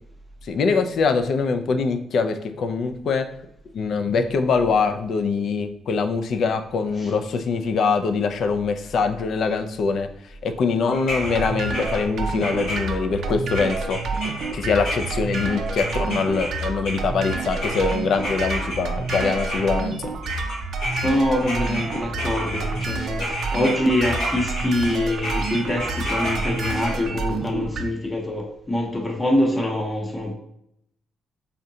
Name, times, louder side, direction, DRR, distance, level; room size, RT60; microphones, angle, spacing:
voice 1, 0.5-3.3 3.7-10.1 10.4-14.0 14.2-20.1, left 4 dB, 65° left, 7 dB, 0.3 m, -23 dB
sound 1, 10.9-13.2 13.5-20.0 20.2-26.9, equal, 80° left, 1.1 m, -32 dB
sound 2, 11.1-27.8, right 3 dB, 65° right, 0.4 m, -29 dB
voice 2, 20.9-30.3, left 1 dB, 20° left, 1 dB, 0.7 m, -24 dB
3.7 x 2.1 x 2.7 m, 0.73 s
cardioid pair, 90°, 0 cm